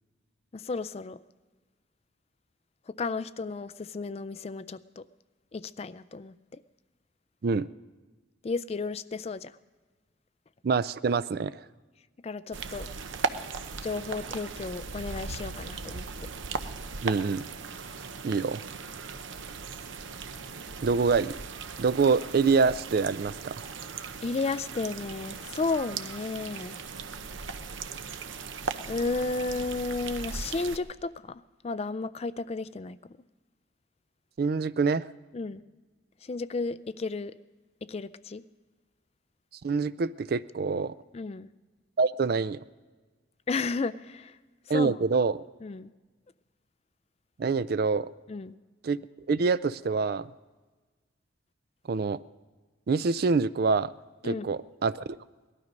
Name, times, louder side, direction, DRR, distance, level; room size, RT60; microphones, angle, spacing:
voice 1, 0.5-1.2 2.9-5.0 5.5-6.6 8.4-9.6 12.2-12.9 13.8-16.1 24.2-26.8 28.9-33.0 35.3-35.6 36.2-37.3 37.8-38.4 41.1-41.5 43.5-44.4 44.7-45.0 45.6-45.9 48.3-48.6 54.2-54.5, left 3 dB, 30° left, 15 dB, 0.3 m, -33 dB
voice 2, 10.6-11.6 17.0-17.4 18.2-18.6 20.8-21.4 21.8-23.6 34.4-35.0 39.6-40.9 42.0-42.6 44.7-45.4 47.4-48.1 48.8-49.0 49.3-50.3 51.9-52.2 52.9-53.9 54.2-55.2, right 4 dB, 50° right, 17 dB, 0.4 m, -26 dB
sound 1, 12.5-30.8, right 4 dB, 75° right, 0.8 m, -38 dB
19.0 x 12.5 x 5.2 m, 1.3 s
head